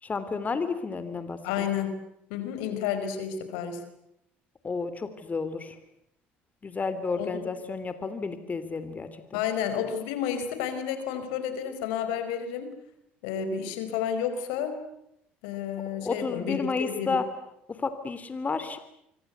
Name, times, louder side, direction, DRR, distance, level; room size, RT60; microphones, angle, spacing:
voice 1, 0.0-1.7 4.6-5.8 6.6-9.4 15.9-17.2 17.7-18.8, left 4 dB, 30° left, 11 dB, 3.3 m, -31 dB
voice 2, 1.4-2.0 2.3-3.8 7.1-7.3 9.3-12.7 13.2-14.8 15.4-17.2, left 8 dB, 80° left, 9 dB, 4.9 m, -31 dB
26.0 x 25.0 x 8.3 m, 0.78 s
hypercardioid pair, 70°, 5 cm